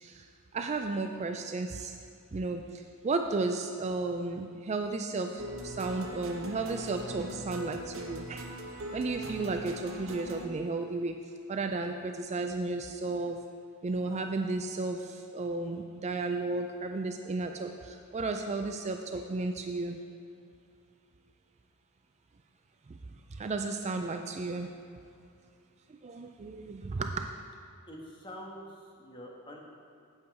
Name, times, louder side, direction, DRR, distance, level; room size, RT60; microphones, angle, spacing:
voice 1, 0.5-1.9 2.3-2.6 3.0-8.5 8.9-11.2 11.5-13.4 13.8-15.0 15.3-20.0 23.4-24.7 26.0-27.2, right 3 dB, 30° right, 5 dB, 0.4 m, -33 dB
sound 1, 5.4-10.5, right 1 dB, 60° right, 0.9 m, -41 dB
voice 2, 27.9-29.6, equal, 20° left, -1 dB, 1.4 m, -46 dB
8.3 x 8.2 x 4.6 m, 2.5 s
head